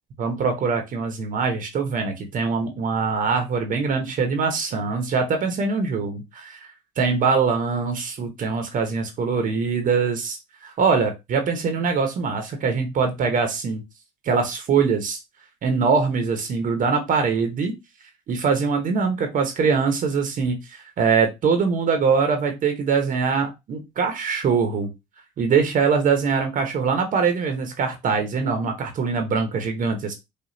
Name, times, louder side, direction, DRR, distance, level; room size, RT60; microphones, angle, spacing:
voice 1, 0.2-6.7 7.0-13.8 14.2-15.2 15.6-17.7 18.3-24.9 25.4-30.1, right 5 dB, 55° right, 5 dB, 1.0 m, -23 dB
5.0 x 2.5 x 2.7 m, 0.22 s
cardioid pair, 110°, 17 cm